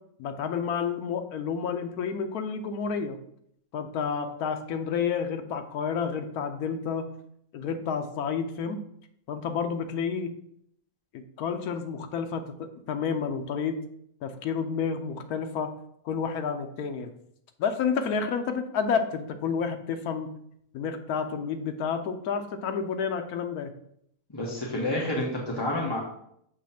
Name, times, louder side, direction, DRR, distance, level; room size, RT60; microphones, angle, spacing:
voice 1, 0.2-3.2 3.7-7.1 7.5-8.8 9.3-10.3 11.1-13.8 14.2-15.7 16.0-17.1 17.6-20.3 20.7-23.7, left 6 dB, 75° left, 6 dB, 1.2 m, -30 dB
voice 2, 24.3-26.0, left 1 dB, 15° left, -4 dB, 1.1 m, -29 dB
7.4 x 3.1 x 5.8 m, 0.73 s
omnidirectional pair, 1.6 m